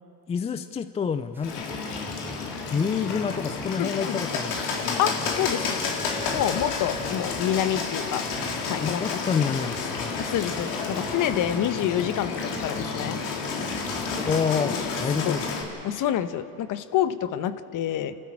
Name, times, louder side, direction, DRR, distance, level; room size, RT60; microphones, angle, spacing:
voice 1, 0.3-2.1 2.7-5.0 8.8-10.1 14.3-15.5, left 6 dB, 15° left, 11 dB, 0.4 m, -28 dB
sound 1, 1.3-14.4, right 1 dB, 5° right, 1.6 m, -42 dB
Bird, 1.4-15.6, left 5 dB, 75° left, 3.9 m, -31 dB
voice 2, 3.8-4.1 5.0-5.8 6.3-8.2 8.6-9.2 10.2-13.2 15.2-15.4 15.8-18.2, left 11 dB, 40° left, 12 dB, 1.2 m, -27 dB
Wind instrument woodwind instrument, 4.1-8.8, left 4 dB, 55° left, 3.4 m, -42 dB
30.0 x 13.5 x 8.7 m, 2.6 s
supercardioid pair, 105°, 47 cm